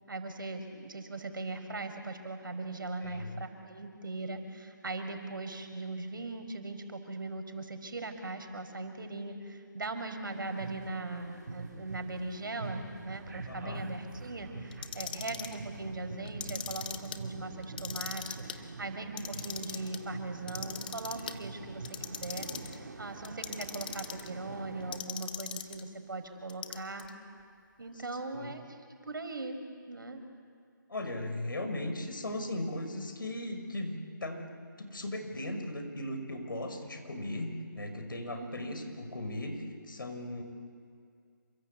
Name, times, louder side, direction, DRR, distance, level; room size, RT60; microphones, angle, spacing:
voice 1, 0.1-27.1 27.8-30.2 38.4-38.7, right 2 dB, 75° right, 7 dB, 5.0 m, -40 dB
voice 2, 3.0-3.4 13.4-13.8 28.3-28.5 30.9-40.4, left 1 dB, 80° left, 6 dB, 6.0 m, -37 dB
sound 1, 10.3-25.0, right 3 dB, 55° right, 3.2 m, -45 dB
Clock, 14.7-15.6 16.3-17.2 17.6-18.6 19.0-20.0 20.5-21.4 21.8-22.8 23.2-24.3 24.9-25.8 26.5-27.1, left 8 dB, 25° left, 1.1 m, -39 dB
28.5 x 24.0 x 8.5 m, 2.2 s
hypercardioid pair, 170°, 11 cm